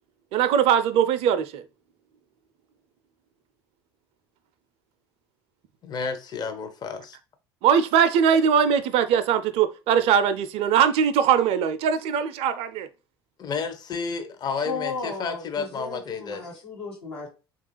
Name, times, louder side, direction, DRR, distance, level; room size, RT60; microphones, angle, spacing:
voice 1, 0.3-1.6 7.6-12.9, right 8 dB, 50° right, 0.4 m, -21 dB
voice 2, 5.8-7.2 13.4-16.6, left 5 dB, 30° left, 0.6 m, -31 dB
voice 3, 14.6-17.3, left 4 dB, 80° left, 1.2 m, -34 dB
3.2 x 2.4 x 3.1 m
figure-of-eight pair, 65°, 13 cm